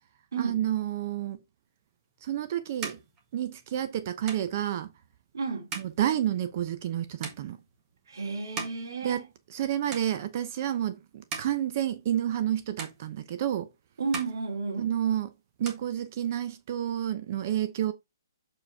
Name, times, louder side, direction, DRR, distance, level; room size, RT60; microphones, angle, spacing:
voice 1, 0.4-1.4 2.2-3.0 3.3-4.9 5.8-7.6 9.0-9.2 9.5-13.7 14.8-15.3 15.6-17.9, right 11 dB, 40° right, 0.7 m, -30 dB
sound 1, 1.9-9.6 9.9-10.6 11.0-12.5 12.8-13.7 14.0-15.2 15.4-16.6, right 4 dB, 20° right, 1.6 m, -43 dB
voice 2, 5.3-5.7 8.1-9.3 14.0-14.9, right 4 dB, 70° right, 2.8 m, -32 dB
6.9 x 4.9 x 3.5 m
hypercardioid pair, 160°, 2 cm